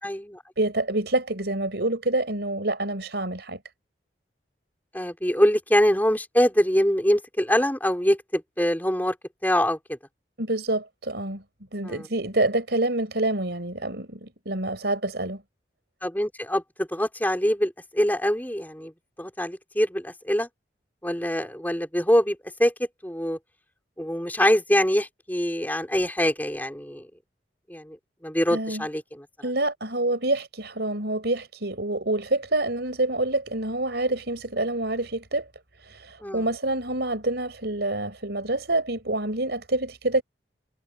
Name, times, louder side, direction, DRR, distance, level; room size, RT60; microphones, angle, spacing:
voice 1, 0.0-0.4 4.9-9.2 9.4-10.0 11.8-12.1 16.0-18.9 19.2-20.5 21.0-22.7 23.0-23.4 24.0-27.1 27.7-28.0 28.2-29.3 36.2-36.5, equal, 10° left, 4.0 m, -24 dB
voice 2, 0.6-3.6 10.4-11.4 11.7-15.4 28.5-28.9 29.4-35.5 35.8-40.2, right 2 dB, 65° right, 4.6 m, -27 dB
head